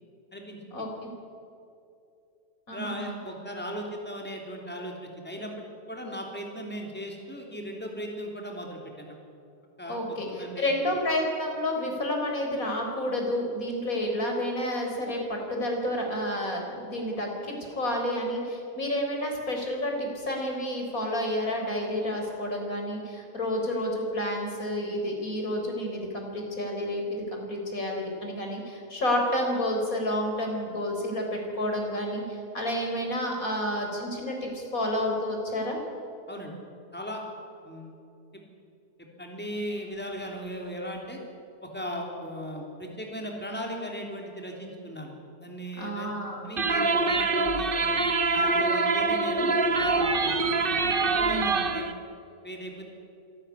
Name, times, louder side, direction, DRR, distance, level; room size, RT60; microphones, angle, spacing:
voice 1, 0.7-1.1 2.7-3.2 9.9-35.8 45.8-46.6 51.2-51.6, left 1 dB, 55° left, 1 dB, 4.6 m, -30 dB
voice 2, 2.7-9.2 9.8-10.7 36.3-36.5 36.9-37.2 37.6-37.9 39.2-41.2 41.6-45.1 45.4-46.1 46.4-47.9 48.3-50.4 51.0-51.9 52.4-52.8, equal, 5° left, 0 dB, 3.4 m, -37 dB
sound 1, 46.6-51.9, right 3 dB, 35° right, 1.2 m, -25 dB
26.0 x 12.5 x 9.9 m, 2.6 s
omnidirectional pair, 1.7 m